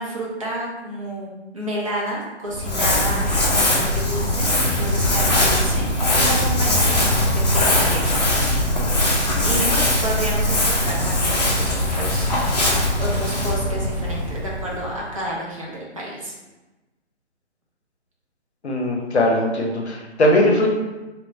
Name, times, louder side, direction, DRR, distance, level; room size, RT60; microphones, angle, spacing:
voice 1, 0.0-8.6 9.4-16.3, right 1 dB, 30° right, -5 dB, 0.4 m, -30 dB
Crumpling crinkling, 2.5-15.0, left 1 dB, 35° left, 0.5 m, -20 dB
voice 2, 18.6-20.7, left 1 dB, 65° left, 0 dB, 0.7 m, -19 dB
3.0 x 2.1 x 2.4 m, 1.1 s
figure-of-eight pair, 140°, 36 cm